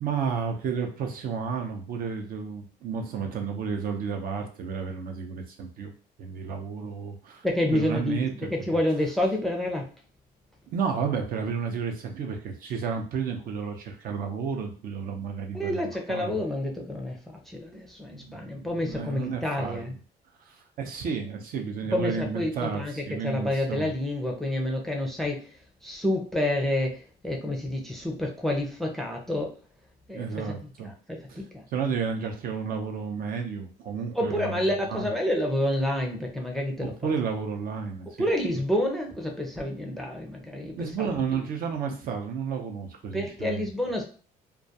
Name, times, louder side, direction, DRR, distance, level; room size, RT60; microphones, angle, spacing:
voice 1, 0.0-5.9 6.2-7.5 7.7-8.5 10.7-16.4 18.1-19.9 20.4-23.9 30.1-30.9 31.3-31.4 31.7-35.1 36.8-38.6 40.8-43.7, right 6 dB, 60° right, 3 dB, 0.5 m, -32 dB
voice 2, 7.4-9.8 15.5-19.9 21.9-25.4 25.8-26.9 27.2-29.5 30.1-30.4 31.1-31.5 34.2-36.9 38.2-40.7 43.1-44.0, left 1 dB, ahead, 1 dB, 0.4 m, -28 dB
2.3 x 2.2 x 2.6 m, 0.39 s
cardioid pair, 110°, 17 cm